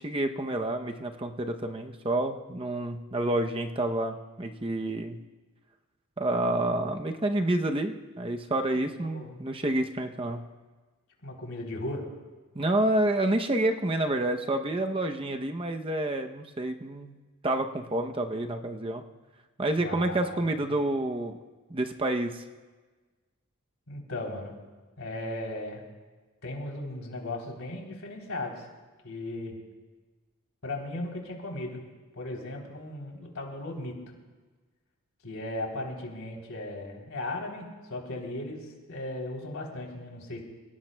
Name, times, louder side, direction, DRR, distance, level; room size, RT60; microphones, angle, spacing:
voice 1, 0.0-5.2 6.2-10.5 12.5-17.2 17.4-19.0 19.6-21.4 21.7-22.4, right 1 dB, 25° right, 5 dB, 0.7 m, -29 dB
voice 2, 8.8-9.4 11.2-12.1 19.8-20.8 23.9-24.5 25.0-25.8 26.4-28.7 29.0-29.6 30.6-31.8 32.1-34.0 35.2-40.4, left 1 dB, 80° left, 0 dB, 3.4 m, -37 dB
28.5 x 17.5 x 2.2 m, 1.3 s
head